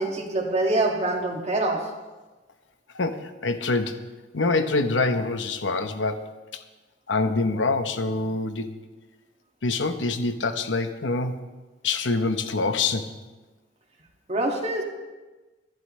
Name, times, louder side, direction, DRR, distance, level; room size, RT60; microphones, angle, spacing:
voice 1, 0.0-1.8 14.3-14.8, right 2 dB, 35° right, 0 dB, 2.2 m, -25 dB
voice 2, 2.9-4.1 4.3-6.3 7.1-8.7 9.6-11.4 11.8-13.1, left 3 dB, 80° left, 8 dB, 1.0 m, -25 dB
22.0 x 11.5 x 3.3 m, 1.2 s
head